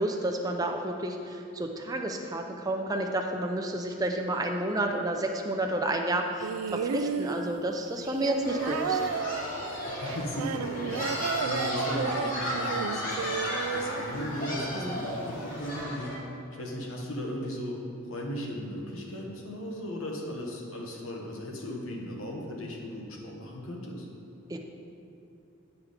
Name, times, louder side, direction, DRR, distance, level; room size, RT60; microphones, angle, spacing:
voice 1, 0.0-9.1 14.7-15.0 24.5-24.6, right 1 dB, 15° right, 2 dB, 0.5 m, -30 dB
sound 1, 6.4-14.8 15.8-15.9, right 6 dB, 85° right, 0.3 m, -33 dB
sound 2, 8.4-16.2, equal, 40° left, 1.6 m, -34 dB
voice 2, 9.6-16.1 16.5-17.8 18.0-24.1, left 1 dB, 75° left, -1 dB, 1.2 m, -37 dB
9.3 x 4.8 x 5.0 m, 2.7 s
head